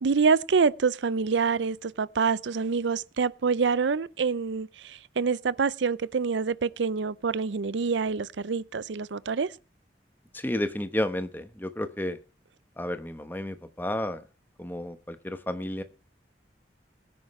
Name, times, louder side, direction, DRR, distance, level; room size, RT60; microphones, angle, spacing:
voice 1, 0.0-9.5, right 5 dB, 85° right, 0.5 m, -26 dB
voice 2, 10.3-12.2 12.8-14.3 14.6-15.8, left 1 dB, 10° left, 1.0 m, -31 dB
21.5 x 9.6 x 3.2 m
head